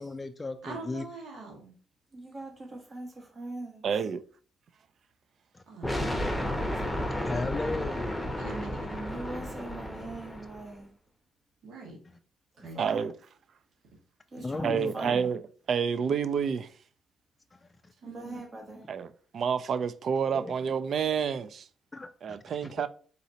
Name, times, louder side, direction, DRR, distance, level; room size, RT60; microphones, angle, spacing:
voice 1, 0.0-1.0 5.5-5.6 7.1-8.2 14.4-15.1 17.5-17.9 20.3-20.6 21.9-22.4 22.6-22.8, left 3 dB, 20° left, 0.3 m, -36 dB
voice 2, 0.6-1.7 5.7-6.2 8.4-9.2 11.6-12.0 12.6-13.0 18.0-18.4, right 3 dB, 80° right, 1.5 m, -43 dB
voice 3, 2.1-3.9 6.5-7.2 9.1-11.0 12.6-13.1 14.3-15.4 18.0-18.9, right 2 dB, 40° right, 1.0 m, -42 dB
voice 4, 3.8-4.2 12.8-13.1 14.6-15.4 15.7-16.7 18.9-19.1 19.3-21.7 22.2-22.9, right 7 dB, 60° right, 0.3 m, -29 dB
sound 1, 5.8-10.7, left 1 dB, ahead, 0.8 m, -32 dB
4.1 x 4.0 x 2.7 m
cardioid pair, 90°, 0 cm